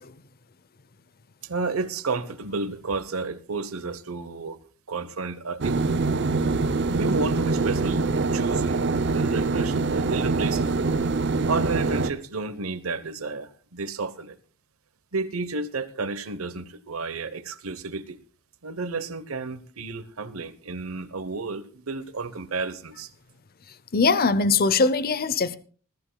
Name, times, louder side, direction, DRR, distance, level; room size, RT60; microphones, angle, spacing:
voice 1, 1.4-4.6 4.9-5.9 6.9-8.0 8.3-8.8 9.1-10.8 11.5-14.4 15.1-18.2 18.6-23.1, right 3 dB, 85° right, 1.0 m, -31 dB
sound 1, 5.6-12.1, right 3 dB, 55° right, 0.6 m, -24 dB
voice 2, 23.7-25.6, left 4 dB, 45° left, 0.7 m, -22 dB
20.0 x 13.5 x 2.3 m
head